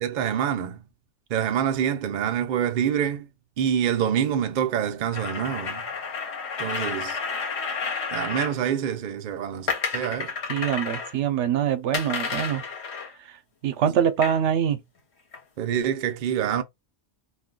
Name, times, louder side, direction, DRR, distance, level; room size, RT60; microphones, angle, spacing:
voice 1, 0.0-0.8 1.3-3.3 3.6-5.8 6.6-7.2 8.1-10.3 15.6-16.6, right 9 dB, 55° right, 0.6 m, -26 dB
sound 1, 5.1-8.6 9.7-11.1 11.9-13.1 14.2-14.4 15.3-15.4, left 5 dB, 70° left, 1.3 m, -31 dB
voice 2, 10.5-12.6 13.2-13.4 13.6-14.8, right 9 dB, 80° right, 0.9 m, -24 dB
2.6 x 2.2 x 3.7 m
omnidirectional pair, 1.2 m